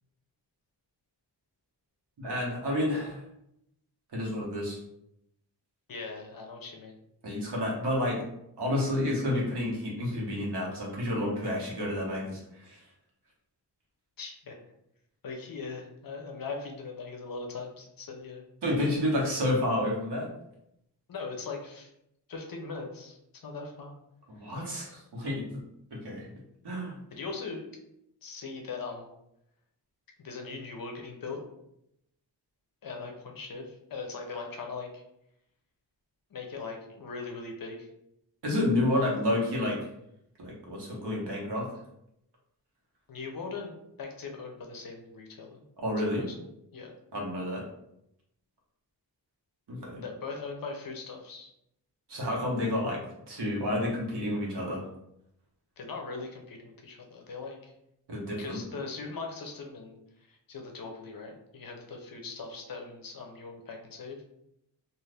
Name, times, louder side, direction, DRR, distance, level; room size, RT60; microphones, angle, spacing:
voice 1, 2.2-3.2 4.1-4.8 7.2-8.2 8.6-12.8 18.6-20.3 24.3-25.4 25.9-26.3 26.6-27.0 38.4-39.8 40.4-41.7 45.8-46.2 47.1-47.6 49.7-50.0 52.1-53.0 53.3-54.8 58.1-58.6, left 1 dB, 70° right, -3 dB, 1.1 m, -30 dB
voice 2, 5.9-7.0 14.2-14.6 15.2-18.5 21.1-21.9 22.3-23.2 23.4-24.0 27.1-27.7 28.2-29.1 30.2-31.4 32.8-35.0 36.3-37.9 39.0-39.1 43.1-45.6 46.0-46.3 46.7-47.0 50.0-51.5 55.8-57.7 58.4-64.3, left 4 dB, 55° left, 2 dB, 0.6 m, -40 dB
2.5 x 2.4 x 3.3 m, 0.79 s
wide cardioid pair, 140°, 42 cm